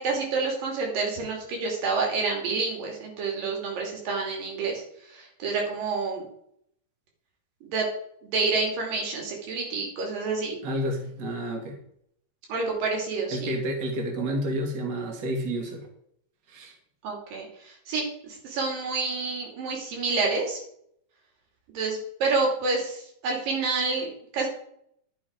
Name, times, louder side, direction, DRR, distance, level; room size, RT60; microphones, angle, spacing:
voice 1, 0.0-6.3 7.6-7.9 8.2-10.6 12.5-13.6 17.0-20.6 21.7-24.5, right 4 dB, 90° right, 0 dB, 4.6 m, -28 dB
voice 2, 10.6-11.8 13.3-15.9 16.5-16.7, right 1 dB, 35° right, 1 dB, 2.6 m, -30 dB
11.5 x 7.8 x 5.3 m, 0.68 s
omnidirectional pair, 3.8 m